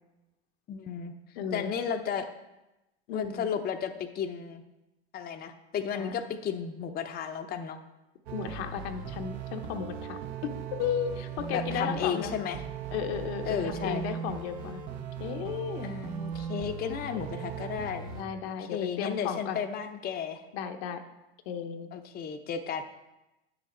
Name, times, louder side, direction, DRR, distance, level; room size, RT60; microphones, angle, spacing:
voice 1, 0.7-1.1 1.5-2.3 3.1-4.6 5.1-7.8 11.5-12.6 13.4-14.1 15.8-18.1 18.6-20.4 21.9-22.8, left 7 dB, 30° left, 6 dB, 0.7 m, -33 dB
voice 2, 1.4-1.7 3.1-3.5 5.9-6.2 8.3-12.3 12.9-14.8 15.2-15.9 16.8-17.3 18.1-19.6 20.5-21.0 21.5-21.9, left 8 dB, 65° left, 6 dB, 0.9 m, -34 dB
sound 1, 8.3-18.2, right 7 dB, 60° right, 1.0 m, -38 dB
9.0 x 6.4 x 4.4 m, 0.98 s
hypercardioid pair, 90°, 33 cm